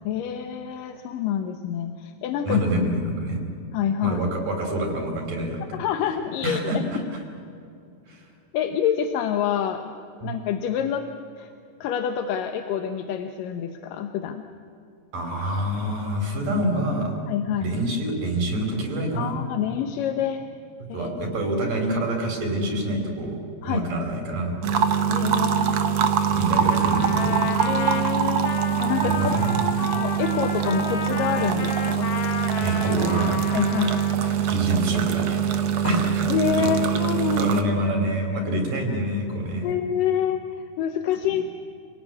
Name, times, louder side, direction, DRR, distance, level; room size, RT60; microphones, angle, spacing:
voice 1, 0.0-2.6 3.7-4.2 5.7-6.8 8.5-9.9 10.2-11.1 11.4-11.5 11.8-14.4 17.3-17.7 19.2-20.4 20.9-21.1 23.6-23.8 24.7-26.1 27.7-28.5 28.8-29.5 29.8-32.1 33.5-34.0 35.8-36.0 36.3-37.5 39.6-41.4, left 8 dB, 85° left, 6 dB, 2.7 m, -27 dB
voice 2, 2.5-3.4 4.0-5.8 6.4-7.2 8.1-8.3 10.2-10.3 15.1-17.2 17.6-19.4 20.9-24.5 26.3-27.4 29.0-29.8 32.6-33.4 34.5-35.4 35.8-36.3 36.5-36.7 37.3-39.7, right 1 dB, 75° right, 2 dB, 6.3 m, -27 dB
sound 1, 24.6-37.6, right 8 dB, 60° right, 2.2 m, -23 dB
Trumpet, 26.7-34.5, left 7 dB, 55° left, 1.6 m, -32 dB
28.0 x 17.5 x 9.7 m, 2.5 s
omnidirectional pair, 3.8 m